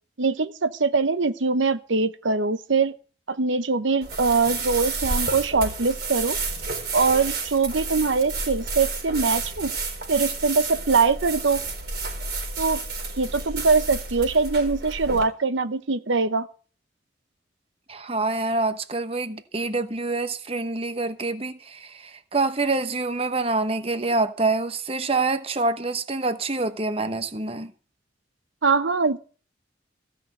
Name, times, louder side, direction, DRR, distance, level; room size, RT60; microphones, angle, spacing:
voice 1, 0.2-2.9 3.3-6.4 6.9-9.7 10.1-11.6 12.6-12.8 13.2-16.5 28.6-29.2, right 4 dB, 75° right, 0.9 m, -22 dB
sound 1, 4.0-15.2, right 3 dB, 55° right, 4.3 m, -31 dB
voice 2, 17.9-27.7, right 3 dB, 30° right, 0.9 m, -26 dB
15.5 x 6.4 x 9.1 m
head